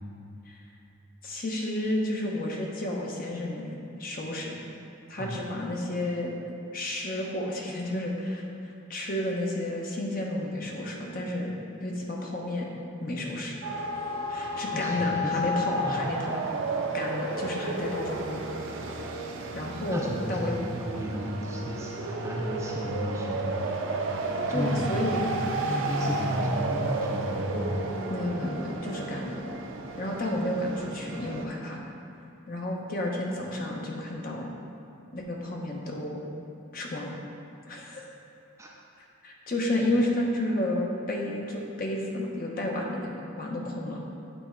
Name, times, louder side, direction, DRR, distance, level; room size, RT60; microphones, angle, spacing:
voice 1, 1.2-4.6 5.1-6.3 6.7-8.4 8.9-12.7 13.0-13.9 14.3-16.4 16.9-18.4 19.5-20.6 24.5-25.3 28.1-29.4 30.0-31.8 32.5-34.5 35.1-36.3 36.7-37.2 37.7-38.0 39.2-43.1 43.4-44.0, left 1 dB, 45° left, -1 dB, 0.8 m, -31 dB
sound 1, 13.6-31.4, right 2 dB, 65° right, 0.5 m, -32 dB
voice 2, 14.5-15.3 15.7-16.2 19.9-23.6 24.5-25.0 25.3-27.9 38.6-38.7, equal, 15° right, -2 dB, 0.4 m, -33 dB
8.0 x 3.5 x 4.3 m, 2.8 s
head